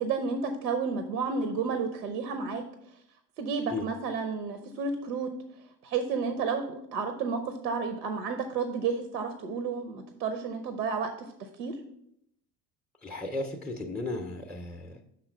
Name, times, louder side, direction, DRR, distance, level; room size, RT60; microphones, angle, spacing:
voice 1, 0.0-2.6 3.4-5.3 5.8-11.1 11.4-11.8, right 5 dB, 80° right, 7 dB, 0.7 m, -31 dB
voice 2, 13.0-15.0, left 2 dB, ahead, 3 dB, 0.5 m, -35 dB
5.9 x 4.2 x 5.1 m, 0.74 s
figure-of-eight pair, 70°, 48 cm